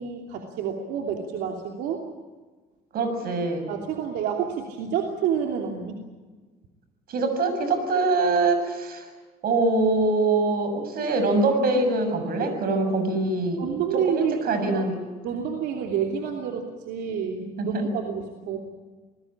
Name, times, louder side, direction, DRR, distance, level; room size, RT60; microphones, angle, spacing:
voice 1, 0.0-2.0 3.7-6.0 12.9-13.0 13.6-14.4 14.7-14.9 15.2-18.6, right 7 dB, 85° right, 2 dB, 2.9 m, -29 dB
voice 2, 2.9-3.6 7.1-9.0 9.4-13.6 14.1-15.0 17.6-17.9, right 3 dB, 65° right, 7 dB, 6.7 m, -23 dB
27.5 x 20.0 x 8.8 m, 1.3 s
cardioid pair, 110°, 17 cm